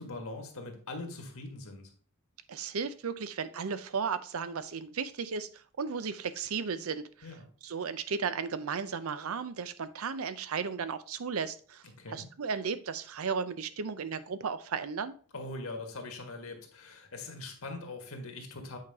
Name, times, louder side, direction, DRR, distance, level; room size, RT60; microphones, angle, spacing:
voice 1, 0.0-1.9 7.2-7.5 12.0-12.3 15.3-18.8, left 2 dB, 75° left, 4 dB, 1.6 m, -42 dB
voice 2, 2.5-7.3 7.6-11.8 12.1-15.1, right 5 dB, 75° right, 13 dB, 0.5 m, -35 dB
8.4 x 4.9 x 3.5 m, 0.43 s
head